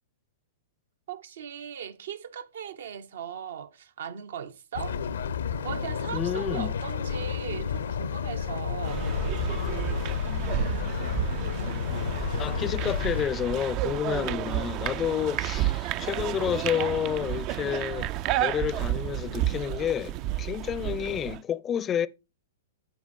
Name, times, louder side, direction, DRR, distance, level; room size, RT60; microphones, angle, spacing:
voice 1, 1.1-5.0 5.5-9.1, right 8 dB, 65° right, 0.8 m, -38 dB
sound 1, 4.7-13.3, left 7 dB, 70° left, 0.6 m, -31 dB
voice 2, 6.1-6.7 12.4-18.1 18.4-22.1, left 9 dB, 25° left, 0.5 m, -30 dB
sound 2, 8.9-21.4, right 14 dB, 40° right, 0.4 m, -31 dB
13.0 x 4.5 x 2.6 m
figure-of-eight pair, 110°, 0 cm